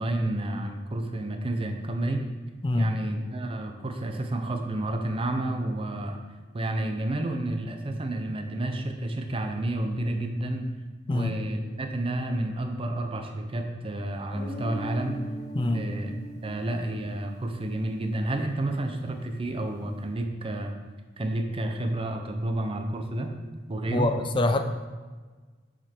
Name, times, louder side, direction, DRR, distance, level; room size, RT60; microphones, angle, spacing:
voice 1, 0.0-2.2 2.8-6.2 6.5-10.7 11.1-15.2 15.7-16.1 16.4-20.7 21.2-23.3 23.7-24.1, right 1 dB, 30° right, 5 dB, 0.6 m, -30 dB
Guitar, 14.3-18.9, right 1 dB, 60° left, 1.8 m, -40 dB
voice 2, 23.9-24.6, left 2 dB, 25° left, 7 dB, 0.5 m, -24 dB
7.2 x 5.1 x 4.4 m, 1.4 s
head